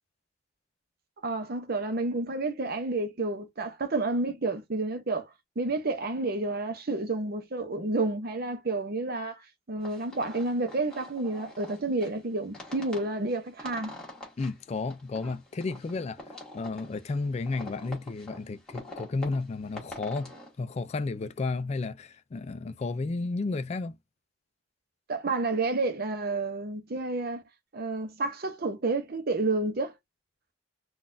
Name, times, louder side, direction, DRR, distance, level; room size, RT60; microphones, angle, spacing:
voice 1, 1.2-9.4 9.7-13.9 25.1-27.4 27.7-29.9, right 2 dB, 50° right, 0.7 m, -30 dB
sound 1, 9.8-20.5, left 1 dB, 5° left, 1.4 m, -46 dB
voice 2, 14.4-16.2 16.5-20.3 20.6-24.0, left 3 dB, 35° left, 0.3 m, -32 dB
3.9 x 2.4 x 2.6 m
head